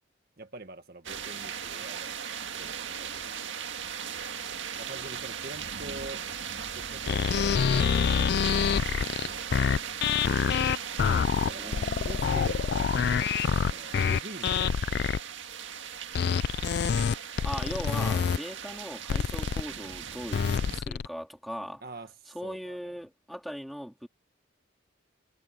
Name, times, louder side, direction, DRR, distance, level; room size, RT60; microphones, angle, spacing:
voice 1, 0.4-3.5 4.8-6.2 6.7-8.1 8.4-10.2 11.4-15.1 21.8-23.0, right 2 dB, 50° right, 1.8 m, -45 dB
sound 1, 1.0-20.8, right 7 dB, 70° right, 1.9 m, -38 dB
sound 2, 7.1-15.2 16.1-18.4 19.1-19.6 20.3-21.1, left 7 dB, 55° left, 0.3 m, -26 dB
voice 2, 11.3-12.2 17.4-21.8 22.3-24.1, equal, ahead, 3.1 m, -39 dB
head